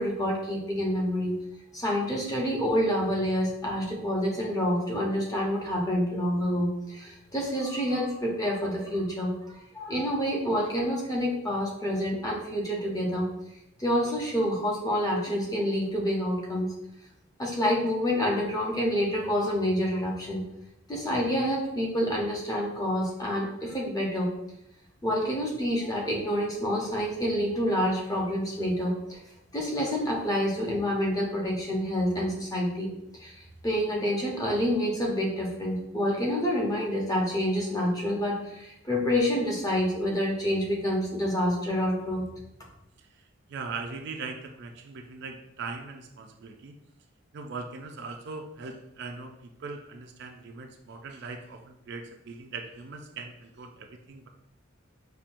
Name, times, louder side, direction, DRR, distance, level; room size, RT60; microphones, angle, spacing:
voice 1, 0.0-1.3 1.7-9.4 9.7-13.3 13.8-16.7 17.4-20.4 20.9-24.3 25.0-29.2 29.5-32.9 33.2-33.3 33.6-42.3, equal, 15° left, -2 dB, 0.7 m, -28 dB
voice 2, 43.0-46.7 47.3-54.3, right 4 dB, 55° right, 4 dB, 0.3 m, -40 dB
5.5 x 2.2 x 2.5 m, 0.81 s
head